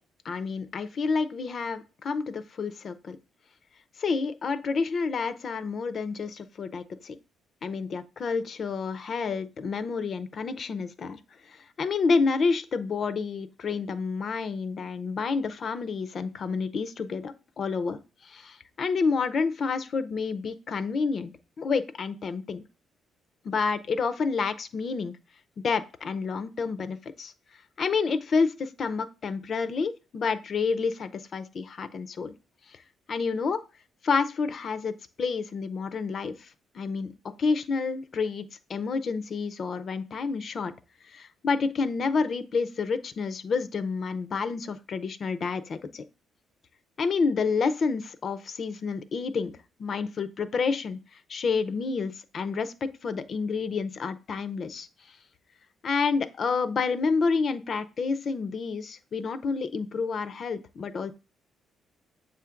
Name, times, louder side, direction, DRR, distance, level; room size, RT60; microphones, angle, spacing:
voice 1, 0.2-3.2 4.0-7.2 7.6-11.2 11.5-21.3 21.6-22.6 23.4-25.1 25.6-27.3 27.8-32.3 32.7-32.8 33.1-33.6 34.0-36.5 36.7-40.7 41.1-46.0 47.0-49.5 49.8-51.0 51.3-54.9 55.8-61.1, left 4 dB, 45° left, 13 dB, 0.5 m, -29 dB
7.4 x 2.5 x 5.7 m, 0.32 s
cardioid pair, 140°, 0 cm